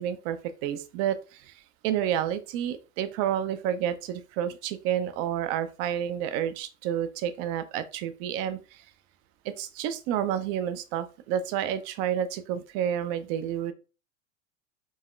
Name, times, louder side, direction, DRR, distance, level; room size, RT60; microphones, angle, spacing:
voice 1, 0.0-8.8 9.4-13.7, right 10 dB, 45° right, 11 dB, 0.6 m, -30 dB
4.0 x 3.6 x 2.5 m, 0.32 s
hypercardioid pair, 85°, 38 cm